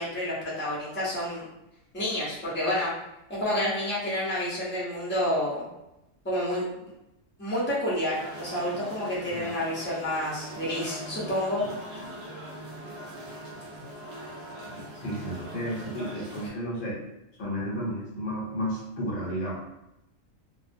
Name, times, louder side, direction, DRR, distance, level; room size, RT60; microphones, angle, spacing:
voice 1, 0.0-1.5 1.9-2.9 3.3-5.7 6.2-6.9 7.4-11.6, left 1 dB, 15° left, -8 dB, 0.5 m, -29 dB
sound 1, 8.1-16.5, right 1 dB, 55° right, 0.6 m, -41 dB
voice 2, 15.0-17.0 17.4-19.6, equal, 50° left, -5 dB, 0.8 m, -32 dB
2.3 x 2.0 x 2.5 m, 0.90 s
omnidirectional pair, 1.4 m